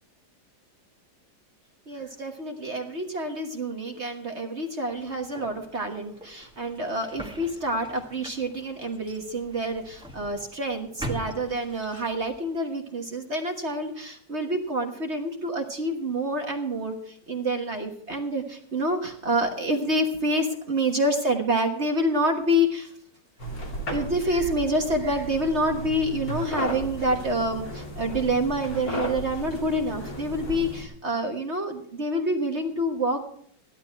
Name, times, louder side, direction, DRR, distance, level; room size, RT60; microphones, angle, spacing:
voice 1, 1.9-22.9 23.9-33.2, right 1 dB, 40° right, 3 dB, 1.5 m, -27 dB
sound 1, 4.9-12.4, right 1 dB, 5° right, 1.5 m, -42 dB
sound 2, 23.4-30.8, equal, 55° left, 3.2 m, -35 dB
15.0 x 11.5 x 4.6 m, 0.64 s
omnidirectional pair, 1.9 m